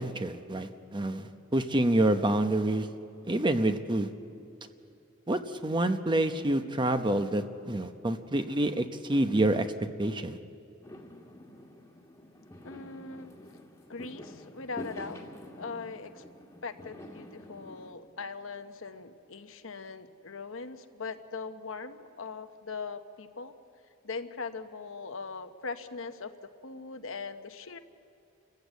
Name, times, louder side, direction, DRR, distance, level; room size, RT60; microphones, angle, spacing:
voice 1, 0.0-2.9 3.3-4.1 5.3-9.7 10.0-10.4, right 1 dB, 25° right, 9 dB, 0.8 m, -27 dB
Fireworks, 10.8-17.9, left 1 dB, 15° left, 1.6 m, -47 dB
voice 2, 12.6-13.6 13.9-15.2 15.6-16.3 16.6-23.5 24.0-27.8, left 4 dB, 70° left, 8 dB, 1.0 m, -40 dB
29.5 x 15.0 x 8.2 m, 2.7 s
head